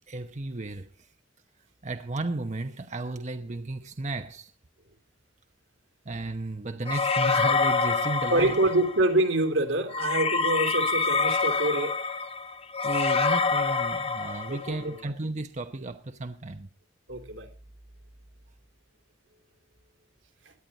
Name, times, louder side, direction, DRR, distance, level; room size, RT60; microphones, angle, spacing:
voice 1, 0.1-0.9 1.8-4.5 6.0-8.6 12.8-16.7, right 2 dB, 40° right, 0.9 m, -34 dB
sound 1, 6.9-9.1 9.9-14.8, left 4 dB, 30° left, 1.1 m, -26 dB
voice 2, 8.3-12.0 14.5-15.1 17.1-17.5 20.4-20.5, right 1 dB, 85° right, 2.9 m, -26 dB
18.0 x 11.0 x 4.0 m
head